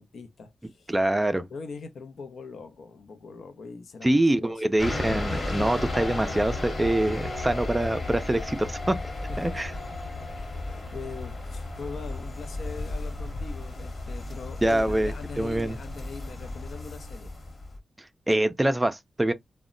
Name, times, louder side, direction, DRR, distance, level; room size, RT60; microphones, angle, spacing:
voice 1, 0.0-0.9 1.5-4.6 9.3-9.8 10.3-17.3, left 4 dB, 75° left, 0.6 m, -42 dB
voice 2, 0.9-1.5 4.0-9.0 9.4-9.7 14.6-15.8 18.3-19.3, right 1 dB, 20° right, 0.4 m, -25 dB
sound 1, 4.8-17.8, left 2 dB, 50° left, 1.1 m, -34 dB
2.1 x 2.0 x 3.6 m
cardioid pair, 60°, 0 cm